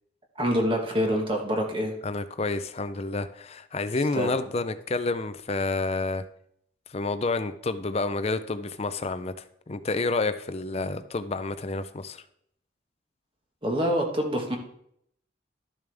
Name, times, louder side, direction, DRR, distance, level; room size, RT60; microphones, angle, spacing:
voice 1, 0.3-1.9 4.1-4.3 13.6-14.6, equal, 25° right, 1 dB, 1.4 m, -26 dB
voice 2, 2.0-6.2 6.9-12.2, left 3 dB, 35° left, 11 dB, 0.5 m, -29 dB
12.5 x 6.9 x 3.5 m, 0.70 s
head